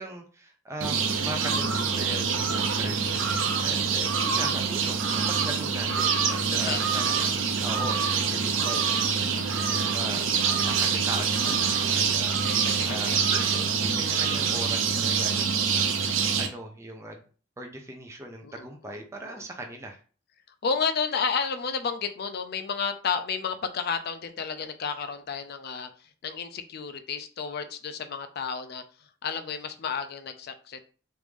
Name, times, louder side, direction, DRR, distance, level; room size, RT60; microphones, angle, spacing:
voice 1, 0.0-7.3 7.6-9.0 9.6-10.2 10.7-12.4 12.8-15.9 16.3-17.2 17.6-20.0, right 1 dB, 15° right, 2 dB, 0.5 m, -39 dB
sound 1, 0.8-16.5, right 6 dB, 80° right, 0.6 m, -25 dB
voice 2, 6.5-7.3 12.4-13.2 18.4-18.7 19.4-19.5 20.6-28.8 29.2-30.8, left 5 dB, 55° left, 9 dB, 0.4 m, -32 dB
3.1 x 2.6 x 3.5 m, 0.39 s
head